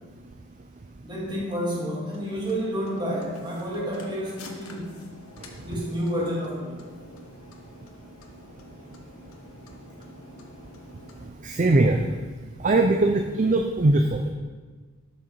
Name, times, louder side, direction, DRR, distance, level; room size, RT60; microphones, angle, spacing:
voice 1, 1.0-5.1 5.6-6.8, equal, 20° right, -4 dB, 2.4 m, -30 dB
sound 1, 2.0-11.3, left 2 dB, 80° left, 1.4 m, -47 dB
voice 2, 5.4-5.8 11.4-12.0 12.6-14.3, right 2 dB, 35° right, 4 dB, 0.5 m, -21 dB
12.5 x 6.4 x 4.5 m, 1.4 s
head